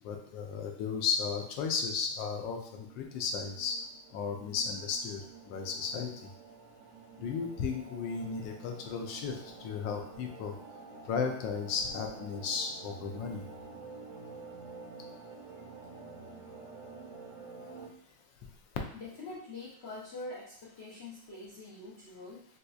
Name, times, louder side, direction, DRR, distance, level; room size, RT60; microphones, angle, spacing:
voice 1, 0.0-2.6 3.0-3.7 4.1-5.2 5.5-6.1 7.2-10.5 11.1-13.4, left 5 dB, 80° left, 3 dB, 1.3 m, -34 dB
sound 1, 2.6-17.9, right 4 dB, 55° right, 0.8 m, -49 dB
voice 2, 18.9-22.5, left 2 dB, 65° left, -7 dB, 0.6 m, -44 dB
4.2 x 2.7 x 2.3 m, 0.64 s
omnidirectional pair, 2.0 m